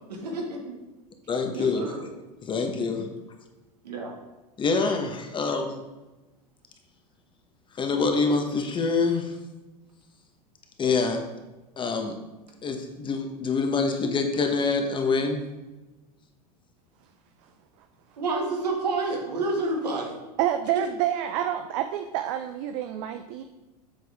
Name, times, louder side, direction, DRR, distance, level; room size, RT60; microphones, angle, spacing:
voice 1, 0.1-0.8 1.5-2.0 2.9-3.0 3.8-4.1 18.2-20.2, right 2 dB, 80° right, 0 dB, 2.0 m, -29 dB
voice 2, 1.3-1.9 2.4-3.1 4.6-5.8 7.8-9.4 10.8-11.2 11.8-12.2 12.6-15.4, left 4 dB, 25° left, 4 dB, 1.1 m, -25 dB
voice 3, 20.4-23.4, right 11 dB, 50° right, 8 dB, 0.5 m, -28 dB
7.8 x 6.1 x 3.5 m, 1.1 s
hypercardioid pair, 95°, 20 cm